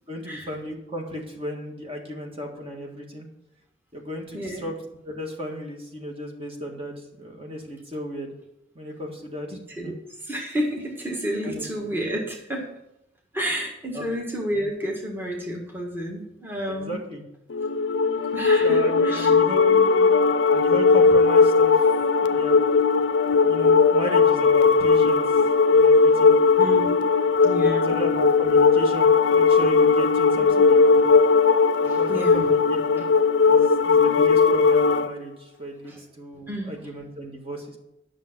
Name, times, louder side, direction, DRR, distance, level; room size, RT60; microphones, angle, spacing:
voice 1, 0.1-3.3 3.9-4.7 5.1-8.3 8.8-9.6 9.8-9.9 11.4-11.6 13.9-14.0 16.7-17.2 18.6-20.2 20.5-21.8 22.3-22.6 23.4-25.4 25.7-26.4 27.9-31.1 31.8-33.1 33.4-37.8, equal, 30° right, 1 dB, 1.7 m, -34 dB
voice 2, 4.3-4.7 9.5-12.7 13.3-17.0 18.3-19.4 26.6-27.1 27.4-28.0 30.3-30.6 31.8-32.5 35.8-36.0 36.5-36.8, equal, 10° right, -1 dB, 1.6 m, -31 dB
sound 1, 17.5-35.1, left 4 dB, 85° left, 0.5 m, -18 dB
10.5 x 6.7 x 6.0 m, 0.85 s
head